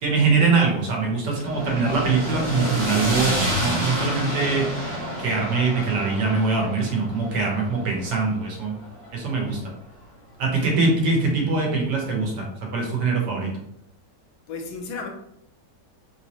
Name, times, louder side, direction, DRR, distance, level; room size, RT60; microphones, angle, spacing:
voice 1, 0.0-4.7 5.2-8.7 9.1-9.7 10.4-13.5, right 4 dB, 75° right, 0 dB, 1.5 m, -23 dB
sound 1, 1.3-9.6, right 1 dB, 55° right, 1.2 m, -29 dB
voice 2, 10.4-11.1 14.5-15.1, left 4 dB, 75° left, 4 dB, 1.1 m, -35 dB
3.2 x 3.1 x 2.9 m, 0.76 s
omnidirectional pair, 1.9 m